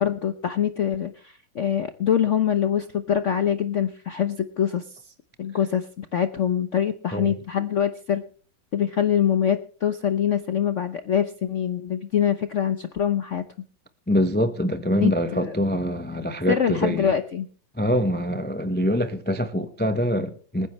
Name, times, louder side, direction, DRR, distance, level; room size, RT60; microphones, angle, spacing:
voice 1, 0.0-4.8 5.4-8.2 8.7-13.4 14.9-15.5 16.5-17.5, left 9 dB, 55° left, 0.9 m, -24 dB
voice 2, 14.1-17.1 17.8-20.7, equal, 10° left, 0.5 m, -24 dB
26.5 x 10.0 x 3.1 m
omnidirectional pair, 2.2 m